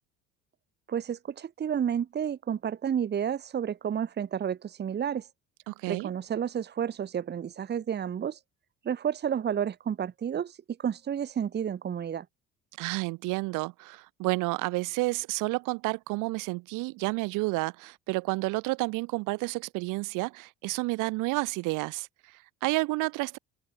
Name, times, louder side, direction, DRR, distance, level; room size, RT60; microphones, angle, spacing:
voice 1, 0.9-5.3 5.8-8.4 8.8-12.2, right 8 dB, 35° right, 1.3 m, -31 dB
voice 2, 5.7-6.1 12.8-23.4, right 23 dB, 80° right, 3.0 m, -30 dB
cardioid pair, 110°, 31 cm